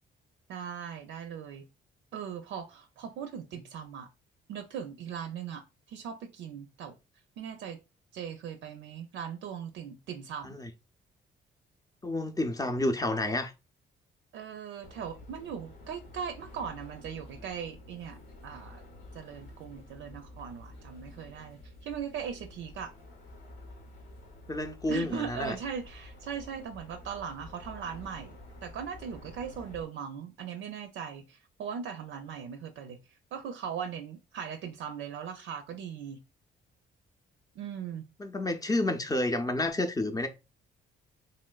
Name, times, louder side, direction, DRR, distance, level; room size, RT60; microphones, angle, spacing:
voice 1, 0.5-1.7 2.1-4.1 4.5-5.6 5.9-6.9 7.4-7.8 8.1-10.6 14.3-18.8 19.1-22.9 24.9-33.0 33.3-36.2 37.6-38.1, right 7 dB, 75° right, 0.5 m, -39 dB
voice 2, 12.0-13.5 24.5-25.6 38.2-40.3, left 2 dB, 20° left, 0.5 m, -30 dB
sound 1, 14.8-29.8, left 1 dB, 75° left, 0.8 m, -50 dB
3.1 x 2.9 x 2.3 m
cardioid pair, 90°, 20 cm